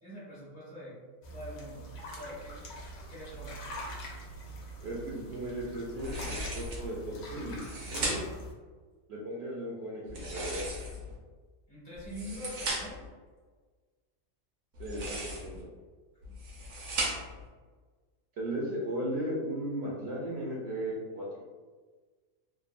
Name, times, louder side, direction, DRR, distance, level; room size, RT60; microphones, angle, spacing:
voice 1, 0.0-1.0 1.3-1.9 2.1-2.6 3.1-3.6 11.7-13.0 16.3-16.4, equal, 40° left, -8 dB, 0.8 m, -44 dB
sound 1, 1.2-8.5, right 1 dB, 85° left, 1.1 m, -44 dB
voice 2, 4.8-8.2 9.1-10.7 14.8-15.7 18.3-21.4, right 1 dB, 65° right, -5 dB, 0.7 m, -36 dB
sound 2, 6.0-6.9 7.5-8.5 10.1-11.1 11.9-13.1 14.7-15.6 16.2-17.4, right 1 dB, 80° right, 1.1 m, -36 dB
3.1 x 2.0 x 2.4 m, 1.4 s
omnidirectional pair, 1.4 m